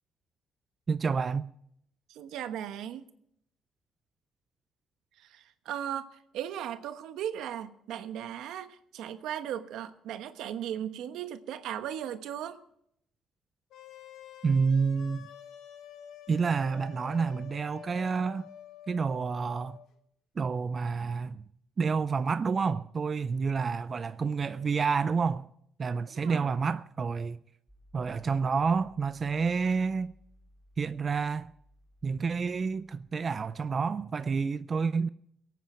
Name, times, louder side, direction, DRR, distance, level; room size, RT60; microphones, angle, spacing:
voice 1, 0.9-1.5 14.4-15.3 16.3-18.5 18.9-19.8 20.4-21.4 21.8-25.5 25.8-27.4 27.9-30.1 30.8-31.5 32.0-35.1, right 5 dB, 35° right, 0.4 m, -29 dB
voice 2, 2.1-3.1 5.2-12.6 26.1-26.6, right 10 dB, 80° right, 1.1 m, -37 dB
sound 1, 13.7-19.9, left 9 dB, 75° left, 1.5 m, -48 dB
sound 2, 27.7-33.8, equal, 5° left, 2.8 m, -60 dB
22.5 x 9.1 x 4.4 m
cardioid pair, 115°, 0 cm